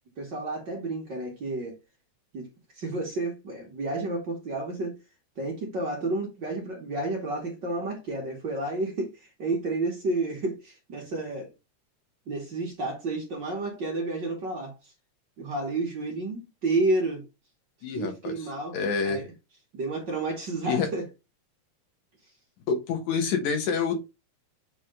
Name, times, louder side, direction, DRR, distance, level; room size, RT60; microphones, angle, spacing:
voice 1, 0.2-1.8 2.3-2.5 2.8-5.0 5.4-11.5 12.3-14.9 15.4-17.3 17.9-18.8 19.0-19.3 19.7-21.1, right 2 dB, 45° right, 1.8 m, -31 dB
voice 2, 17.8-18.4 18.7-19.2 20.6-20.9 22.7-24.0, left 5 dB, 75° left, 2.7 m, -27 dB
7.4 x 3.5 x 3.7 m
omnidirectional pair, 3.4 m